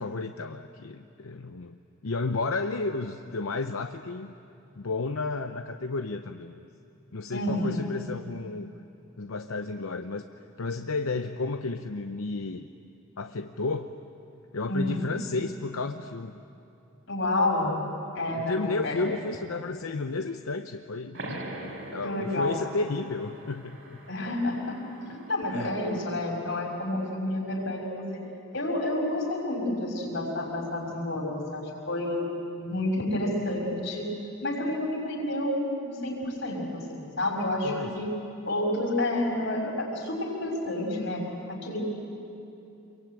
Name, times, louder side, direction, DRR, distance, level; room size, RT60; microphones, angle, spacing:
voice 1, 0.0-4.3 4.8-6.6 7.1-8.7 9.2-10.2 10.6-12.7 13.2-14.0 14.5-16.4 18.3-24.0 25.5-25.8 37.6-38.1, left 3 dB, 85° left, 7 dB, 0.8 m, -32 dB
voice 2, 7.3-7.8 14.7-15.1 17.1-17.7 18.1-19.0 22.0-22.6 24.1-28.2 28.5-32.3 32.5-34.1 34.4-38.1 38.4-41.2 41.5-41.8, left 1 dB, 60° left, -1 dB, 6.2 m, -29 dB
sound 1, 21.1-26.4, right 1 dB, 70° right, 4.1 m, -43 dB
27.5 x 23.0 x 9.0 m, 2.7 s
head